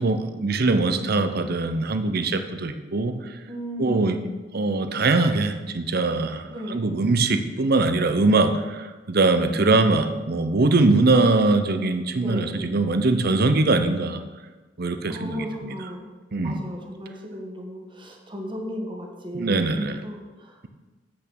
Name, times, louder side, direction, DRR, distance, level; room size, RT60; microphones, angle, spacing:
voice 1, 0.0-3.1 3.8-4.2 4.5-6.4 6.7-14.2 14.8-15.7 16.3-16.6 19.3-20.0, right 3 dB, 55° right, 9 dB, 0.7 m, -22 dB
voice 2, 3.5-4.3 6.5-6.8 9.5-9.8 12.2-12.5 15.1-16.1 16.4-20.7, equal, 25° right, 1 dB, 1.4 m, -35 dB
8.2 x 6.1 x 6.2 m, 1.2 s
head